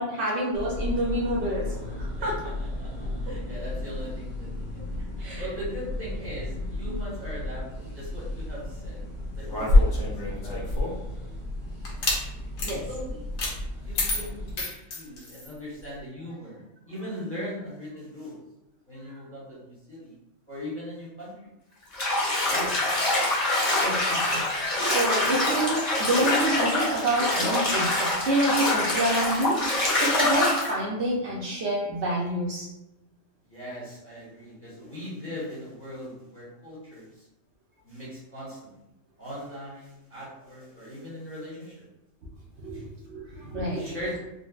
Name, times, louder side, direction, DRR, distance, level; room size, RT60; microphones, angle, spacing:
voice 1, 0.0-2.4 5.2-5.5 6.9-7.0 12.6-12.9 22.5-22.7 23.8-24.4 24.8-29.6 30.0-32.7 42.6-44.0, right 1 dB, 65° right, -3 dB, 0.9 m, -28 dB
sound 1, 0.5-14.6, left 1 dB, 60° left, 1.1 m, -35 dB
voice 2, 2.2-2.5 2.8-5.0 5.4-9.0 9.3-12.0 12.6-13.3 13.8-14.7 14.9-18.4 18.9-20.1 20.5-21.3 33.5-37.2 37.8-38.7 39.2-41.8 42.7-42.8 43.8-44.2, equal, 10° left, -7 dB, 0.8 m, -40 dB
sound 2, 9.5-11.1 11.8-12.2 12.6-12.8 13.4-13.5 14.0-15.5, left 2 dB, 90° left, 1.2 m, -25 dB
Bathtub (filling or washing), 21.9-30.7, left 2 dB, 40° left, 0.7 m, -25 dB
3.7 x 2.0 x 2.4 m, 0.93 s
omnidirectional pair, 1.3 m